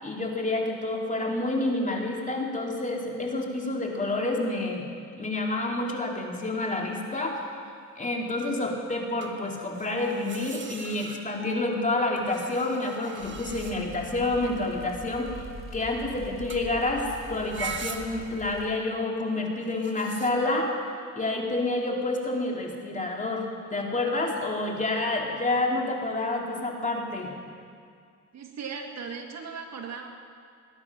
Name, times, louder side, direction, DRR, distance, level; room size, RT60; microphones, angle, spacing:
voice 1, 0.0-4.9 5.2-7.4 8.0-15.3 15.7-20.7 21.1-23.5 23.7-27.3, left 2 dB, 25° left, 0 dB, 2.6 m, -28 dB
sound 1, 6.3-6.6 9.2-11.6 12.2-14.1 16.5-16.7 17.0-18.4 19.6-20.3, right 6 dB, 40° right, 1.4 m, -41 dB
sound 2, 13.2-18.7, left 2 dB, 45° left, 2.9 m, -43 dB
voice 2, 28.3-30.1, right 5 dB, 60° right, 3 dB, 1.9 m, -37 dB
19.0 x 10.5 x 6.0 m, 2.2 s
cardioid pair, 90°, 30 cm